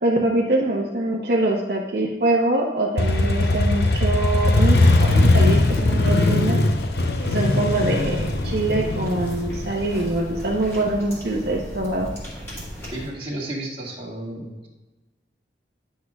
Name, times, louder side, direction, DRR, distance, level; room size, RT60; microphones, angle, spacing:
voice 1, 0.0-6.6 7.2-12.1, right 2 dB, 60° right, -2 dB, 0.8 m, -24 dB
Motorcycle, 3.0-10.6, left 2 dB, 60° left, 0.7 m, -20 dB
sound 1, 8.0-13.1, equal, 15° left, 2.1 m, -35 dB
voice 2, 12.9-14.7, right 1 dB, 30° right, -5 dB, 1.9 m, -32 dB
10.0 x 6.4 x 2.4 m, 1.2 s
head